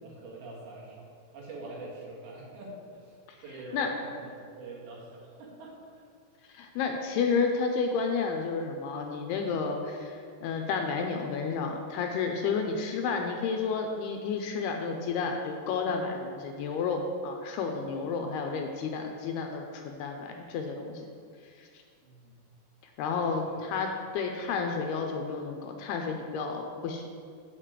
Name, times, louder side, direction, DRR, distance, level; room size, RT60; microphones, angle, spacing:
voice 1, 0.0-3.2 3.4-6.0 17.9-18.1 22.0-22.4 23.5-23.6, right 2 dB, 80° right, -5 dB, 4.1 m, -45 dB
voice 2, 6.5-21.1 21.6-21.7 23.0-27.0, left 5 dB, 80° left, 3 dB, 2.5 m, -31 dB
8.4 x 5.1 x 7.4 m, 2.2 s
omnidirectional pair, 5.0 m